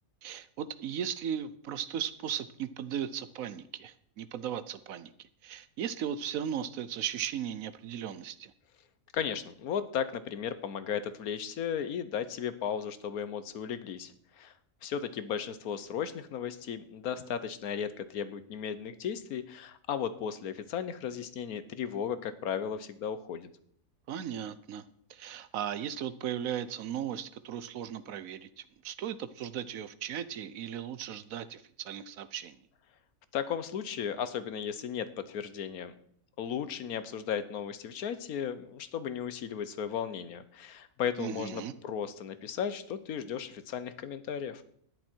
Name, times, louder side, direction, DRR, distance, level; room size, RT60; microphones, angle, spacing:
voice 1, 0.2-5.1 5.4-8.5 24.1-24.8 25.1-32.6 41.2-41.7, right 9 dB, 75° right, 14 dB, 1.1 m, -37 dB
voice 2, 9.1-14.5 14.8-23.5 33.3-35.9 36.4-44.6, left 8 dB, 85° left, 13 dB, 1.4 m, -35 dB
12.0 x 10.5 x 4.5 m, 0.64 s
omnidirectional pair, 1.5 m